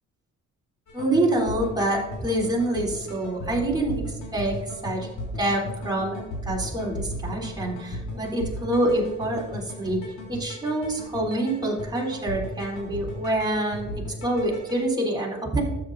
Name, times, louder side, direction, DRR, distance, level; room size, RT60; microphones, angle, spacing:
sound 1, 0.9-14.8, left 1 dB, 80° left, 3.3 m, -36 dB
voice 1, 0.9-3.9 4.3-4.6 4.8-5.1 5.4-10.0 10.3-13.9 14.2-15.6, right 1 dB, 15° right, -3 dB, 3.5 m, -26 dB
13.0 x 8.3 x 2.7 m, 1.1 s
cardioid pair, 90°, 30 cm